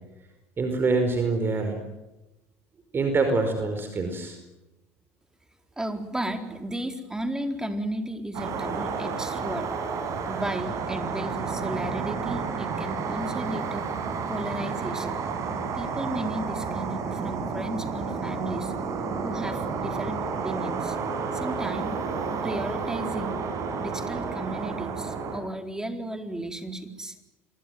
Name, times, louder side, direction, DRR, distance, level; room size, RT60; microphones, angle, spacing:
voice 1, 0.6-1.8 2.9-4.4 15.6-15.7, right 3 dB, 30° right, 6 dB, 4.9 m, -25 dB
voice 2, 5.8-9.7 10.3-13.9 14.3-15.2 15.7-18.7 19.2-21.0 21.3-22.0 22.4-23.3 23.8-27.1, right 1 dB, 10° right, 6 dB, 4.1 m, -34 dB
sound 1, 8.3-25.4, right 5 dB, 50° right, 6.4 m, -31 dB
26.5 x 22.5 x 9.5 m, 1.0 s
hypercardioid pair, 75°, 7 cm